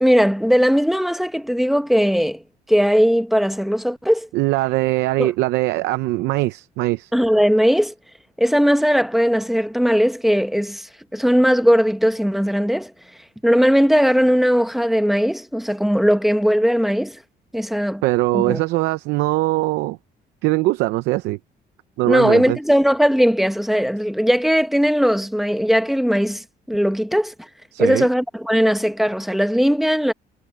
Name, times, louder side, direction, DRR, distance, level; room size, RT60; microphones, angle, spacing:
voice 1, 0.0-2.4 2.7-4.3 5.2-5.3 7.1-7.9 8.4-12.9 13.4-17.2 17.5-18.0 18.3-18.6 22.0-27.3 27.8-30.1, equal, ahead, 1.2 m, -18 dB
voice 2, 4.3-7.1 18.0-20.0 20.4-21.4 22.0-22.6 27.7-28.1, right 19 dB, 90° right, 0.7 m, -21 dB
cardioid pair, 110°, 17 cm